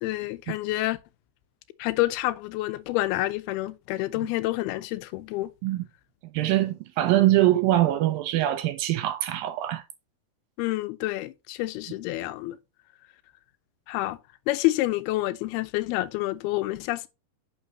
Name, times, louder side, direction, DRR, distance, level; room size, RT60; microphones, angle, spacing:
voice 1, 0.0-1.0 1.8-5.5 10.6-12.6 13.9-14.2 14.5-17.1, left 17 dB, 90° left, 2.6 m, -28 dB
voice 2, 6.3-9.8, right 14 dB, 80° right, 2.3 m, -23 dB
9.8 x 5.7 x 2.8 m
omnidirectional pair, 4.4 m